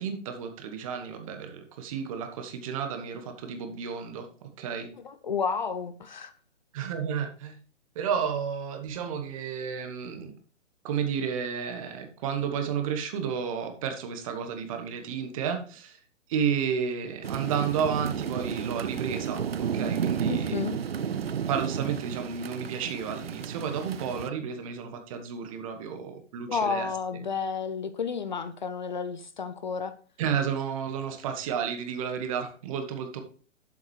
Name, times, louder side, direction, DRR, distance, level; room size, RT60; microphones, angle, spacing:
voice 1, 0.0-4.3 4.6-4.9 6.7-7.6 7.9-10.3 10.8-16.0 16.3-20.6 21.5-27.2 30.2-33.2, right 7 dB, 25° right, 1.2 m, -32 dB
voice 2, 5.0-6.3 20.3-20.8 26.5-29.9, left 6 dB, 40° left, 0.6 m, -31 dB
sound 1, 17.2-24.3, right 7 dB, 55° right, 0.6 m, -32 dB
11.5 x 7.3 x 3.2 m
figure-of-eight pair, 125°, 37 cm